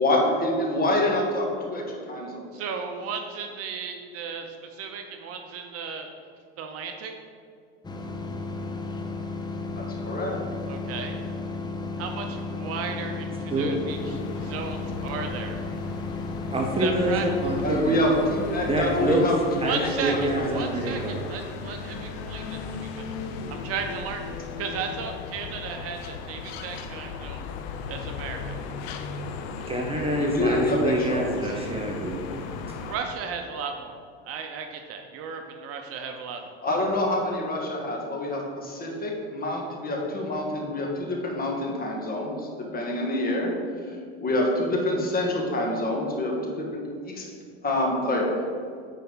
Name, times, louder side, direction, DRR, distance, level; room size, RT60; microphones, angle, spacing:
voice 1, 0.0-2.4 9.8-10.4 17.6-20.8 30.1-31.5 36.6-43.5 43.9-47.3 47.6-48.3, left 1 dB, 30° left, -1 dB, 1.7 m, -27 dB
voice 2, 2.5-6.1 6.6-7.1 10.7-11.2 12.0-15.6 16.8-17.3 19.6-24.2 24.6-27.4 27.9-28.6 31.5-31.7 32.8-34.0 34.3-36.4, right 6 dB, 45° right, 5 dB, 0.8 m, -35 dB
sound 1, 7.8-17.8, left 3 dB, 15° left, 0.7 m, -33 dB
sound 2, 13.9-33.0, left 4 dB, 65° left, 0.7 m, -36 dB
voice 3, 16.5-18.0 18.6-19.2 19.6-21.2 29.7-32.3 32.7-32.8, right 1 dB, 20° right, 0 dB, 0.9 m, -26 dB
8.9 x 4.6 x 4.0 m, 2.3 s
supercardioid pair, 100°, 32 cm